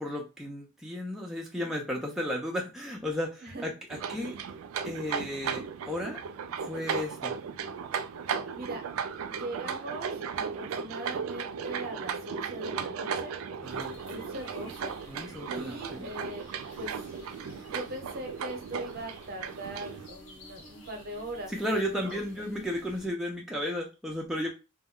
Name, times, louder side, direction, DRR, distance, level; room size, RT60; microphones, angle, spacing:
voice 1, 0.0-4.4 4.8-6.2 6.6-7.4 13.6-14.0 15.1-16.1 21.5-24.5, left 1 dB, ahead, -1 dB, 0.4 m, -34 dB
sound 1, 3.9-20.1, right 6 dB, 80° right, 0.3 m, -36 dB
voice 2, 9.3-13.3 14.0-14.9 15.5-16.4 16.8-16.9 17.6-22.2, right 1 dB, 45° right, 3 dB, 0.7 m, -40 dB
sound 2, 13.6-23.1, equal, 75° left, 1.0 m, -52 dB
2.1 x 2.1 x 3.6 m, 0.29 s
head